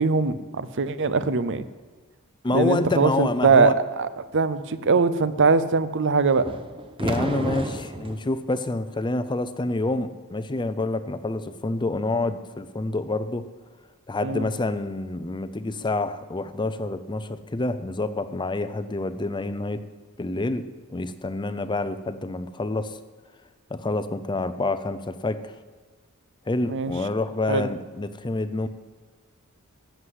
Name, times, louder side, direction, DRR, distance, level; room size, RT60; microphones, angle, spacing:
voice 1, 0.0-1.6 2.5-6.5 14.2-14.5 26.6-26.9 27.5-27.7, right 4 dB, 55° right, 14 dB, 0.6 m, -22 dB
voice 2, 2.4-3.7 7.0-13.5 14.1-19.8 20.2-23.0 23.7-25.4 26.5-28.7, left 2 dB, 20° left, 12 dB, 0.6 m, -27 dB
sound 1, 6.4-8.2, right 1 dB, 25° right, 0.8 m, -30 dB
13.5 x 8.0 x 8.0 m, 1.3 s
head